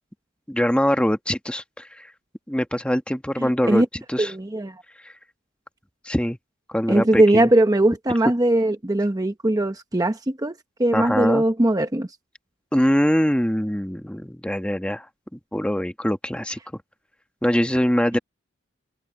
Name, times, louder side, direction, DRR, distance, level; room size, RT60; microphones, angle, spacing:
voice 1, 0.5-2.1 2.5-4.3 5.0-5.1 6.0-6.4 6.7-7.5 10.9-11.4 12.7-15.1 15.3-16.6 17.4-18.2, equal, 5° left, 1.2 m, -23 dB
voice 2, 3.4-3.9 4.2-4.7 6.9-10.5 10.8-12.1, right 1 dB, 20° right, 0.9 m, -20 dB
open air
head